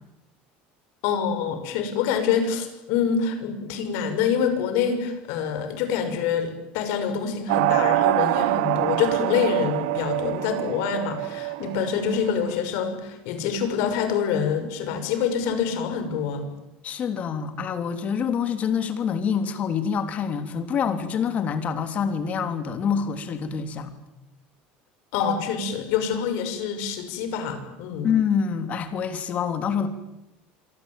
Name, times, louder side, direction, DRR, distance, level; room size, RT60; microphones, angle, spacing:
voice 1, 1.0-16.4 25.1-28.1, left 7 dB, 65° left, 8 dB, 6.4 m, -26 dB
sound 1, 7.5-12.5, right 19 dB, 90° right, 1.0 m, -25 dB
voice 2, 16.8-23.9 28.0-29.9, left 7 dB, 30° left, 9 dB, 3.3 m, -26 dB
26.0 x 24.5 x 9.2 m, 0.91 s
cardioid pair, 155°, 4 cm